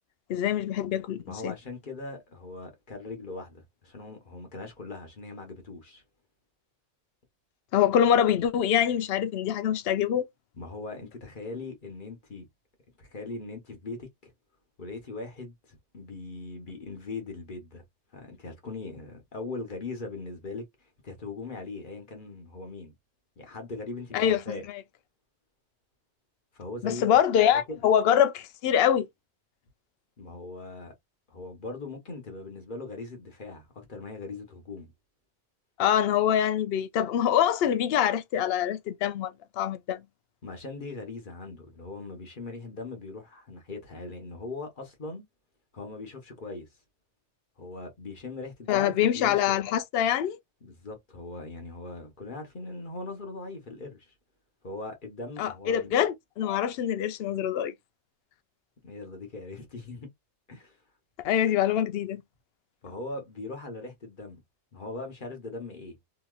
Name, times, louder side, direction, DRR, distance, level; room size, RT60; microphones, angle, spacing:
voice 1, 0.3-1.5 7.7-10.3 24.1-24.4 26.8-29.1 35.8-40.0 48.7-50.4 55.4-57.7 61.2-62.2, left 10 dB, 65° left, 0.7 m, -24 dB
voice 2, 1.2-6.0 10.5-12.4 13.0-14.3 14.8-17.8 18.1-20.6 21.0-22.9 23.4-24.6 26.5-27.1 27.7-27.8 30.2-30.9 31.3-34.9 40.4-45.2 45.7-46.7 47.6-49.6 50.6-54.1 54.6-55.9 58.8-60.1 60.5-60.8 62.8-64.4 64.7-66.0, left 3 dB, 50° left, 1.1 m, -40 dB
3.0 x 2.7 x 2.3 m
omnidirectional pair, 1.2 m